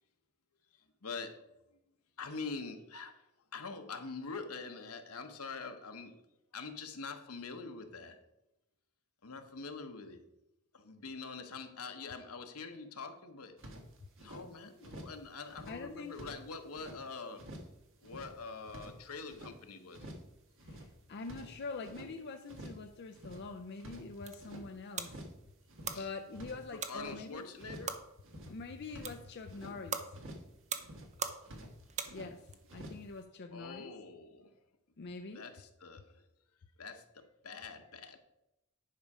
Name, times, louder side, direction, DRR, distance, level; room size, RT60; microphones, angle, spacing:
voice 1, 1.0-1.4 2.2-3.2 3.5-6.2 6.5-8.2 9.2-10.2 10.7-13.5 14.2-17.4 18.0-20.1 25.9-26.1 26.7-28.0 33.5-34.5 35.3-36.2 36.8-38.2, left 4 dB, 80° left, 6 dB, 1.1 m, -45 dB
sound 1, 13.6-14.4 14.8-15.2 15.5-17.0 17.4-17.8 18.0-19.6 19.9-20.3 20.6-22.1 22.5-22.9 23.1-24.7 25.0-25.4 25.7-27.2 27.6-28.0 28.2-29.8 30.1-30.5 30.8-31.2 31.4-32.3 32.7-33.1, right 1 dB, 60° right, 1.4 m, -50 dB
voice 2, 15.7-16.2 20.6-25.3 25.9-27.5 28.5-30.2 32.1-33.9 35.0-35.5, left 3 dB, 50° left, 6 dB, 0.5 m, -45 dB
sound 2, 23.9-32.6, right 6 dB, 30° right, 0.7 m, -44 dB
10.0 x 5.4 x 4.9 m, 0.89 s
head